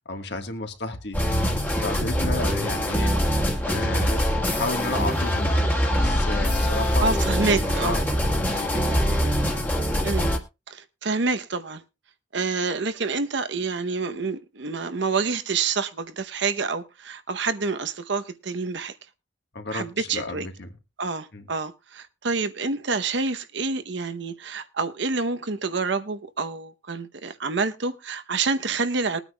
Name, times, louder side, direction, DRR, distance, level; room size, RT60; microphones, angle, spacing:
voice 1, 0.0-1.4 1.7-3.3 3.7-8.0 8.4-9.4 19.5-20.7 21.3-21.5, left 2 dB, 60° left, 1.6 m, -33 dB
sound 1, 1.1-10.4, equal, 10° left, 1.6 m, -23 dB
voice 2, 7.0-8.0 10.0-10.3 10.7-11.8 12.3-18.9 19.7-20.5 21.0-29.2, right 4 dB, 60° right, 0.9 m, -27 dB
21.0 x 9.1 x 2.3 m
head